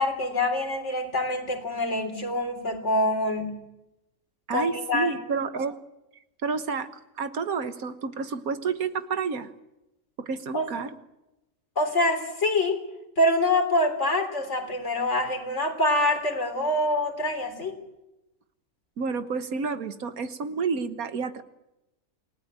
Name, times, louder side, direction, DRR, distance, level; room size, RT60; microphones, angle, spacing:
voice 1, 0.0-3.6 4.5-5.2 10.5-10.7 11.8-12.8 13.2-17.8, left 1 dB, 50° left, 5 dB, 3.9 m, -25 dB
voice 2, 4.5-5.8 6.4-6.9 7.2-9.5 10.2-10.9 19.0-21.4, right 5 dB, 75° right, 10 dB, 1.7 m, -30 dB
29.0 x 18.0 x 8.9 m, 0.97 s
omnidirectional pair, 1.5 m